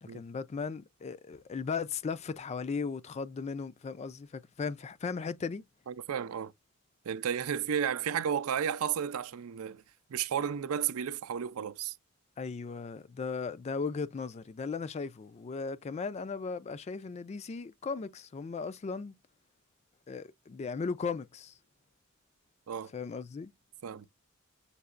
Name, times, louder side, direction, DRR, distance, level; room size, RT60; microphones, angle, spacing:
voice 1, 0.0-5.6 12.4-19.1 20.1-21.5 22.9-23.5, left 5 dB, 30° left, 0.3 m, -37 dB
voice 2, 5.9-6.5 7.1-9.8 10.1-12.0 22.7-22.9 23.8-24.1, right 8 dB, 80° right, 0.4 m, -33 dB
6.6 x 2.8 x 2.4 m
head